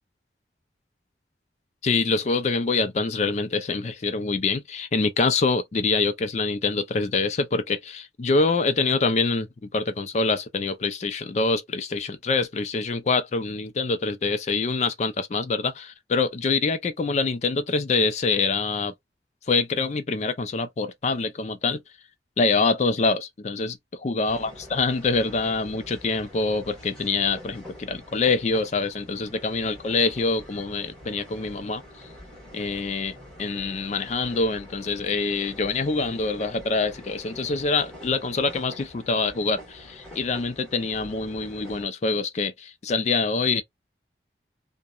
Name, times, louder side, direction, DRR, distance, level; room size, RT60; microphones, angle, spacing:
voice 1, 1.8-18.9 19.5-21.8 22.4-31.8 32.5-43.6, left 3 dB, 40° left, 0.4 m, -25 dB
sound 1, 24.2-41.8, left 1 dB, 5° left, 1.2 m, -45 dB
2.9 x 2.1 x 2.3 m
head